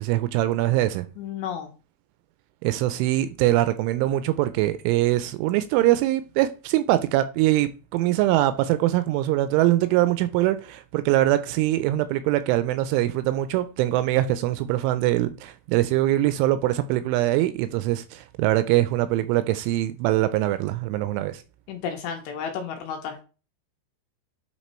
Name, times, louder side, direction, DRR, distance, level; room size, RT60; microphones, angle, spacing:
voice 1, 0.0-1.1 2.6-21.4, right 15 dB, 85° right, 2.8 m, -23 dB
voice 2, 1.2-1.7 21.7-23.2, left 7 dB, 75° left, 2.8 m, -32 dB
9.1 x 3.9 x 4.3 m
omnidirectional pair, 5.7 m